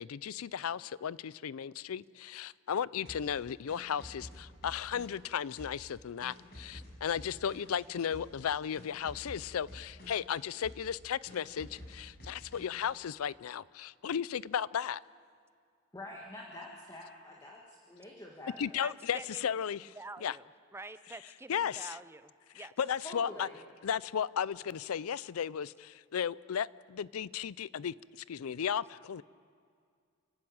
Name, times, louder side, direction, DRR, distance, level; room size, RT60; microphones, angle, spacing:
voice 1, 0.0-15.0 18.6-19.9 20.2-20.4 21.5-22.0 22.8-23.5 23.8-29.2, left 8 dB, 80° left, 20 dB, 0.4 m, -35 dB
sound 1, 3.0-5.3 5.6-7.8 8.1-8.4 8.7-10.3 10.6-11.0 11.2-12.9, left 1 dB, 50° left, 6.4 m, -50 dB
voice 2, 15.9-18.8 23.0-23.6, left 1 dB, 15° left, -2 dB, 1.8 m, -47 dB
voice 3, 18.8-19.5 19.9-22.7, right 2 dB, 10° right, 12 dB, 0.6 m, -47 dB
29.0 x 12.0 x 8.8 m, 2.2 s
head